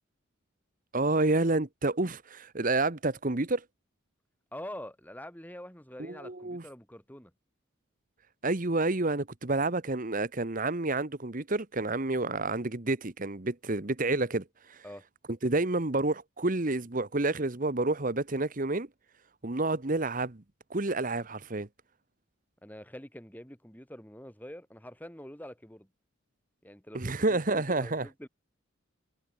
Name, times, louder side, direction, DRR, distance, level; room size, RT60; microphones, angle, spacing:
voice 1, 0.9-3.6 6.0-6.6 8.4-14.8 15.4-18.9 19.4-20.4 20.7-21.7 26.9-28.1, right 2 dB, 40° right, 1.2 m, -29 dB
voice 2, 4.5-7.3 14.8-15.0 22.6-25.9 26.6-28.3, left 1 dB, 10° left, 6.8 m, -45 dB
head